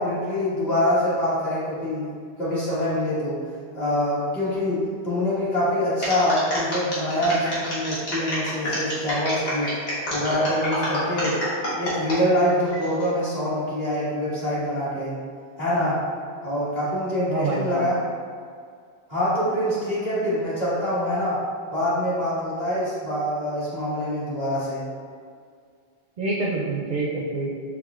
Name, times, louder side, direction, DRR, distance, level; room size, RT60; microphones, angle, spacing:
voice 1, 0.0-2.1 2.4-3.4 3.7-9.7 10.1-11.4 11.8-15.1 15.6-16.0 16.4-18.0 19.1-21.4 21.7-24.8, equal, 40° left, -11 dB, 1.5 m, -25 dB
sound 1, 6.0-12.2 12.7-13.1, equal, 75° left, 1.5 m, -29 dB
voice 2, 17.3-17.8 26.2-27.5, right 2 dB, 55° right, -5 dB, 0.6 m, -26 dB
4.6 x 3.7 x 2.3 m, 2.1 s
omnidirectional pair, 1.1 m